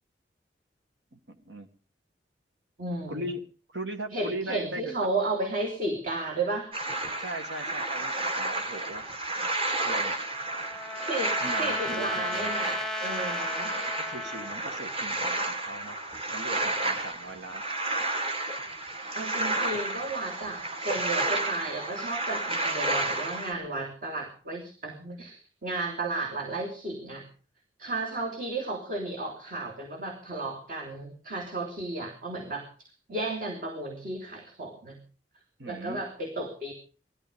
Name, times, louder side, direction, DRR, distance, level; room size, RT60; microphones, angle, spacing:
voice 1, 1.1-1.7 3.1-3.4 3.7-5.0 7.2-9.1 9.8-10.2 11.4-12.5 14.0-16.0 16.3-17.6 35.6-36.0, right 1 dB, 75° right, 7 dB, 1.9 m, -39 dB
voice 2, 2.8-3.2 4.1-6.7 11.1-13.7 19.1-27.3 27.8-35.0 35.6-36.7, right 2 dB, 50° right, 1 dB, 3.1 m, -33 dB
sound 1, 6.7-23.5, right 2 dB, 35° right, 2.1 m, -31 dB
Trumpet, 10.0-14.6, left 2 dB, ahead, 1.0 m, -35 dB
19.0 x 13.5 x 5.2 m, 0.38 s
head